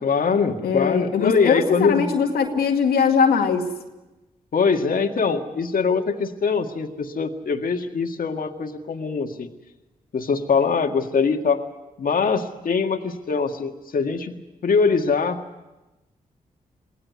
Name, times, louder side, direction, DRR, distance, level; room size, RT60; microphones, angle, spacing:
voice 1, 0.0-2.1 4.5-9.5 10.1-11.6 12.0-14.3 14.6-15.4, left 5 dB, 65° left, 5 dB, 1.9 m, -22 dB
voice 2, 0.6-3.7, left 6 dB, 85° left, 3 dB, 2.1 m, -21 dB
23.5 x 16.5 x 9.6 m, 1.1 s
supercardioid pair, 40°, 16 cm